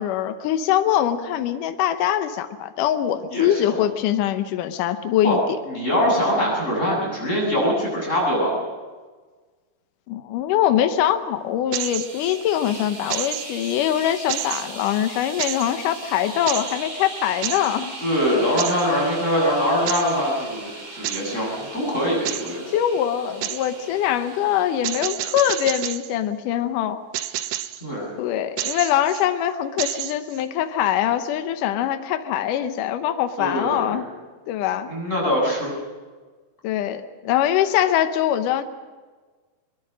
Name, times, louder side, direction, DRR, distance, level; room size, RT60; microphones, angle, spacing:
voice 1, 0.0-5.4 10.1-17.9 18.3-18.5 22.7-27.0 28.2-34.1 34.5-34.9 36.6-38.6, left 11 dB, 75° left, 8 dB, 2.5 m, -23 dB
voice 2, 3.3-3.8 5.2-5.4 5.7-8.6 18.0-22.6 27.8-28.1 33.4-34.0 34.9-35.7, equal, 20° left, -3 dB, 7.8 m, -23 dB
sound 1, 11.7-12.4 13.1-13.8 14.3-14.9 15.4-15.7 16.5-16.8 17.4-17.7 18.6-18.9 19.9-20.2 21.0-21.4 22.3-22.6 23.4-23.7 24.8-26.1 27.1-27.8 28.6-29.3 29.8-30.4, right 12 dB, 75° right, 2.4 m, -30 dB
sound 2, 11.8-25.1, right 2 dB, 60° right, 6.1 m, -39 dB
23.0 x 22.5 x 6.3 m, 1.4 s
omnidirectional pair, 3.9 m